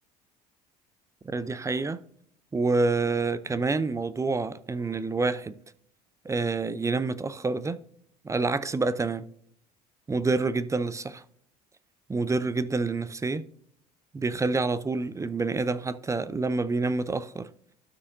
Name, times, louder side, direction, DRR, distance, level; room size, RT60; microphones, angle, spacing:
voice 1, 1.2-2.0 2.5-5.6 6.2-7.8 8.2-9.3 10.1-11.2 12.1-13.4 14.1-17.5, right 3 dB, 15° right, 0.5 m, -27 dB
12.5 x 6.3 x 2.6 m
figure-of-eight pair, 60°, 21 cm